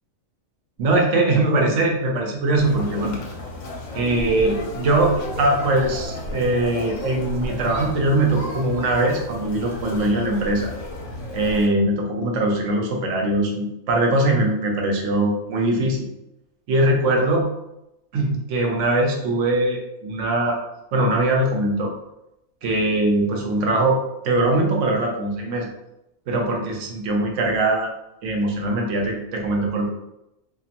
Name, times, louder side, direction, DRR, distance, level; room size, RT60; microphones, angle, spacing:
voice 1, 0.8-3.1 3.9-10.7 11.3-16.1 16.7-17.5 18.1-20.6 20.9-21.9 22.6-24.0 24.2-25.7 26.3-27.9 28.2-29.9, right 2 dB, 70° right, 1 dB, 0.9 m, -21 dB
Conversation, 2.6-11.7, left 1 dB, 75° left, 0.9 m, -33 dB
2.8 x 2.5 x 2.4 m, 0.88 s
omnidirectional pair, 1.4 m